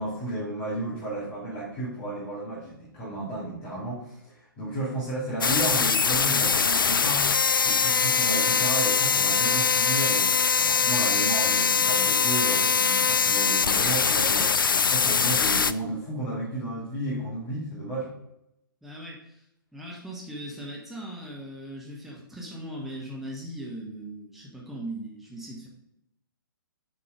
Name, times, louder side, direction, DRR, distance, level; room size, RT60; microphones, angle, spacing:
voice 1, 0.0-14.5 14.9-18.1, right 2 dB, 25° left, -7 dB, 2.5 m, -33 dB
sound 1, 5.4-15.7, left 6 dB, 70° left, 0.4 m, -22 dB
voice 2, 18.8-19.4 19.7-25.7, right 1 dB, ahead, -3 dB, 1.2 m, -39 dB
7.4 x 4.6 x 4.9 m, 0.81 s
figure-of-eight pair, 125°, 12 cm